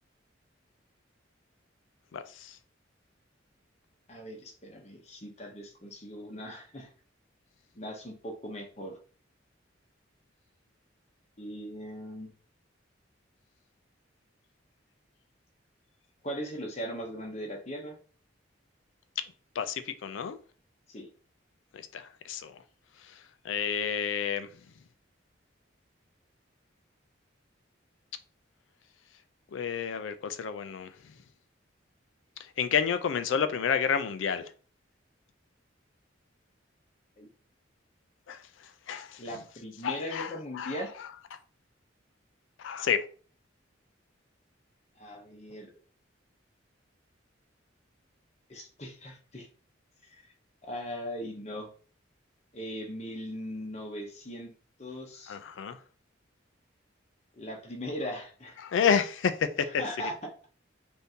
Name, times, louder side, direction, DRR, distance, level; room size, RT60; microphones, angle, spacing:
voice 1, 2.1-2.6 19.6-20.4 21.7-22.5 23.4-24.5 29.5-30.9 32.6-34.5 38.3-38.4 38.9-39.2 39.8-40.8 42.6-43.1 55.3-55.8 58.6-59.8, left 7 dB, 75° left, 0.4 m, -30 dB
voice 2, 4.1-6.9 7.7-8.9 11.4-12.3 16.2-18.0 20.9-21.1 37.2-37.3 39.2-40.9 45.0-45.7 48.5-49.5 50.6-51.7 52.5-54.5 54.8-55.4 57.4-58.6 59.8-60.1, equal, 35° left, 0.7 m, -39 dB
3.5 x 2.6 x 2.7 m
head